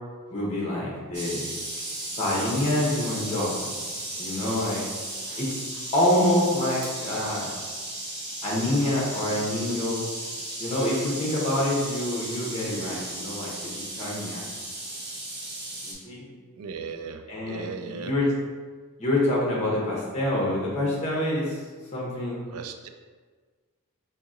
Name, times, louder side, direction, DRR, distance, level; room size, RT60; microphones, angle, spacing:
voice 1, 0.3-1.5 2.1-3.8 4.2-4.8 5.4-5.6 5.9-7.5 8.4-10.0 10.6-13.5 14.0-14.4 15.8-16.3 17.3-18.3 19.0-21.6 21.9-22.4, left 1 dB, 30° left, -5 dB, 0.9 m, -26 dB
sound 1, 1.1-15.9, right 1 dB, 50° right, 0.8 m, -35 dB
voice 2, 16.6-18.1 22.5-22.9, right 5 dB, 85° right, 6 dB, 0.3 m, -37 dB
2.8 x 2.7 x 3.7 m, 1.5 s
head